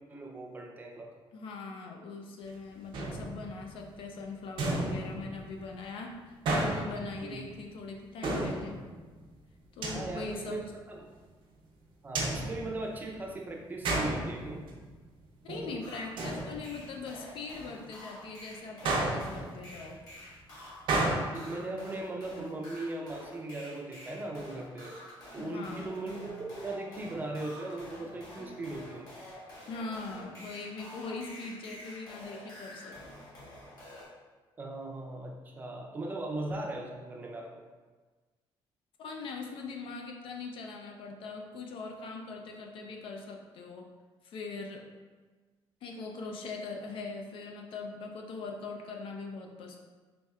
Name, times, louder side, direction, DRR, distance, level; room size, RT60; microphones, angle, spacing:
voice 1, 0.1-1.1 7.2-7.4 9.9-10.6 10.9-11.1 12.0-14.6 21.0-24.9 25.3-29.2 34.6-37.6, right 2 dB, 20° right, -1 dB, 0.5 m, -38 dB
voice 2, 1.3-8.8 9.7-10.7 15.4-20.0 25.4-25.9 29.7-33.0 39.0-43.9 44.2-44.8 45.8-49.8, left 3 dB, 70° left, 2 dB, 0.5 m, -41 dB
sound 1, 2.9-3.8 4.6-5.6 6.4-7.4 8.2-9.1 9.8-10.6 12.1-13.3 13.8-14.9 15.2-15.8 16.2-17.0 18.8-19.8 20.9-21.2, right 2 dB, 60° right, 0.7 m, -32 dB
sound 2, 15.8-34.1, left 1 dB, 40° left, 1.3 m, -48 dB
4.2 x 3.2 x 2.3 m, 1.3 s
cardioid pair, 150°, 9 cm